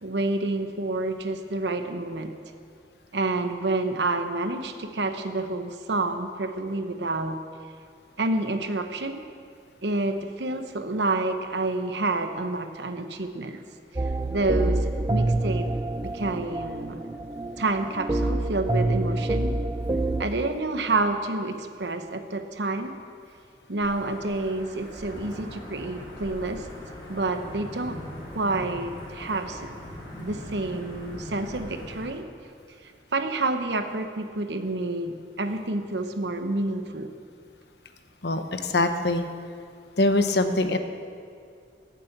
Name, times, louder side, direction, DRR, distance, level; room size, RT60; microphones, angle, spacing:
voice 1, 0.0-2.3 3.1-7.4 8.2-9.2 9.8-13.6 13.9-14.0 14.3-15.7 16.0-17.0 17.6-19.6 20.2-23.0 23.7-26.7 27.1-28.0 28.3-29.7 30.2-32.3 33.1-37.1, right 2 dB, 80° right, 8 dB, 0.9 m, -28 dB
sound 1, 14.0-20.3, right 2 dB, 20° right, 0.3 m, -27 dB
Wind / Thunder / Rain, 23.8-32.1, left 1 dB, 30° left, 3.9 m, -41 dB
voice 2, 38.2-39.2 40.0-40.8, left 2 dB, 75° left, 8 dB, 0.9 m, -23 dB
14.5 x 7.5 x 8.0 m, 2.3 s
head